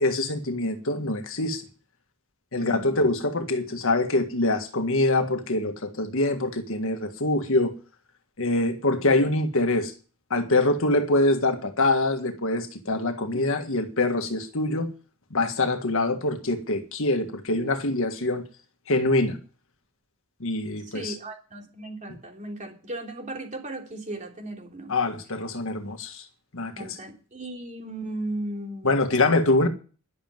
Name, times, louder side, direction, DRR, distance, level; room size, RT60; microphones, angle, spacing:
voice 1, 0.0-1.6 2.5-7.7 8.4-9.9 10.3-14.9 15.3-18.4 18.9-19.4 20.4-21.1 24.9-26.2 26.5-27.0 28.8-29.7, left 2 dB, 65° left, 1.7 m, -24 dB
voice 2, 2.6-2.9 20.8-24.9 26.8-29.2, right 1 dB, 35° right, 3.4 m, -36 dB
11.0 x 7.5 x 9.2 m
head